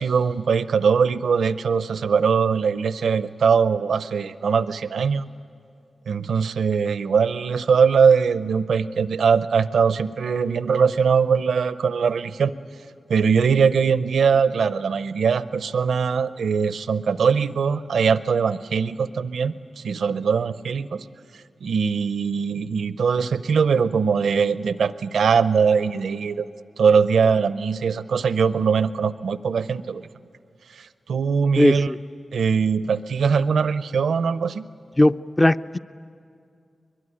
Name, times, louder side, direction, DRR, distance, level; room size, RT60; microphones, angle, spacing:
voice 1, 0.0-5.3 6.1-12.5 13.1-21.0 21.6-26.5 26.8-30.0 30.8-31.9 32.3-34.6, right 6 dB, 90° right, 14 dB, 0.5 m, -21 dB
voice 2, 31.6-32.0 35.0-35.8, left 1 dB, 25° left, 12 dB, 0.6 m, -18 dB
22.5 x 22.5 x 9.8 m, 2.4 s
cardioid pair, 45°, 0 cm